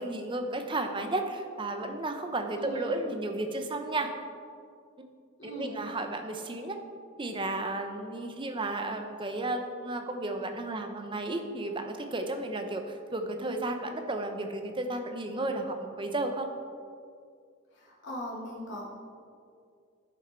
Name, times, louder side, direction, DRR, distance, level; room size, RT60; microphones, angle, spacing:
voice 1, 0.0-4.1 5.0-5.1 5.4-6.8 7.2-16.5, right 2 dB, 25° right, 5 dB, 0.7 m, -33 dB
voice 2, 2.6-3.0 5.4-5.7 17.7-18.9, equal, 55° left, -5 dB, 2.5 m, -39 dB
10.5 x 6.6 x 4.4 m, 2.2 s
head